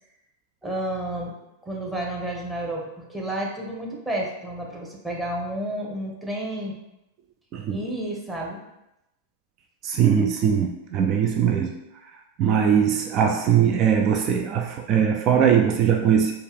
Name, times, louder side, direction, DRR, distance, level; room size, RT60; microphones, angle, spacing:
voice 1, 0.6-1.3 1.6-6.7 7.7-8.6, right 1 dB, 10° right, -2 dB, 1.0 m, -31 dB
voice 2, 9.8-11.8 12.4-16.3, right 8 dB, 40° right, 3 dB, 0.4 m, -21 dB
4.4 x 2.4 x 3.4 m, 0.90 s
hypercardioid pair, 95°, 0 cm